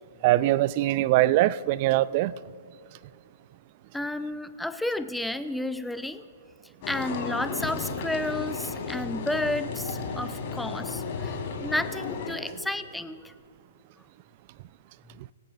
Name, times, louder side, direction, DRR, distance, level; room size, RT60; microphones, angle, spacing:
voice 1, 0.2-2.3, right 16 dB, 45° right, 0.4 m, -22 dB
voice 2, 3.9-6.2 6.9-13.3, left 1 dB, 5° left, 0.6 m, -32 dB
sound 1, 6.8-12.4, left 4 dB, 50° left, 3.9 m, -34 dB
24.0 x 17.0 x 2.5 m
hypercardioid pair, 120°, 0 cm